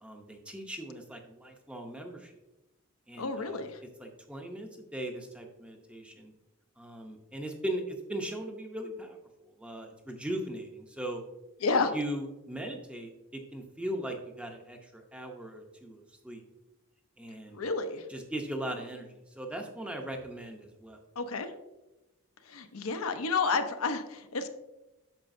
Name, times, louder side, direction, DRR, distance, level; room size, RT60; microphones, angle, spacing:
voice 1, 0.0-2.3 3.1-3.6 4.0-6.3 6.8-9.2 9.4-11.2 11.9-16.4 17.2-17.6 18.1-21.0, right 1 dB, 5° right, 2 dB, 0.7 m, -39 dB
voice 2, 3.2-3.8 11.6-11.9 17.5-18.1 21.2-21.5 22.4-24.5, left 4 dB, 75° left, 7 dB, 0.7 m, -30 dB
8.9 x 6.6 x 2.6 m, 1.0 s
head